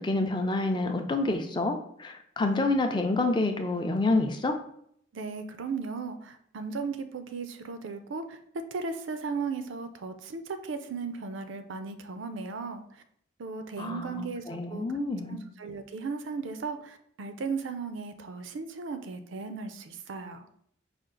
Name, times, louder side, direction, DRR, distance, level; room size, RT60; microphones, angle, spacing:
voice 1, 0.0-4.6 13.8-15.4, left 2 dB, 25° left, 5 dB, 0.4 m, -28 dB
voice 2, 5.1-13.0 13.4-14.9 15.3-20.5, right 4 dB, 75° right, 9 dB, 0.5 m, -36 dB
5.1 x 2.4 x 3.8 m, 0.67 s
head